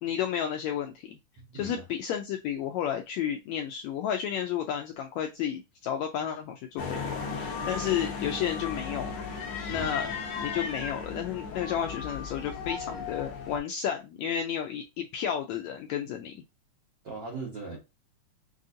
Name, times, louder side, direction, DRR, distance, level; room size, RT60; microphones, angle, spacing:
voice 1, 0.0-1.2 1.5-9.2 9.7-10.1 10.4-16.4, left 9 dB, 85° left, 1.6 m, -32 dB
voice 2, 1.4-1.8 9.7-10.0 17.0-17.8, right 3 dB, 70° right, 1.0 m, -39 dB
sound 1, 6.8-13.6, left 5 dB, 65° left, 1.4 m, -36 dB
6.1 x 2.5 x 2.6 m
omnidirectional pair, 3.6 m